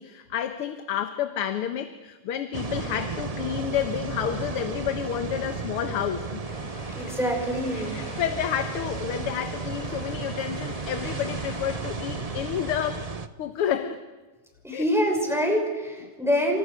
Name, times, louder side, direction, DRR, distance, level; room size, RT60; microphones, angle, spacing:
voice 1, 0.0-6.4 7.7-13.1 13.4-14.0 14.7-14.9 16.1-16.2, left 9 dB, 85° left, 9 dB, 2.1 m, -30 dB
sound 1, 2.5-13.3, right 4 dB, 55° right, 0.4 m, -34 dB
sound 2, 6.4-12.9, left 2 dB, 35° left, 4.4 m, -44 dB
voice 2, 6.9-8.0 14.6-16.6, equal, ahead, 2 dB, 6.1 m, -25 dB
29.5 x 26.5 x 6.5 m, 1.3 s
omnidirectional pair, 2.4 m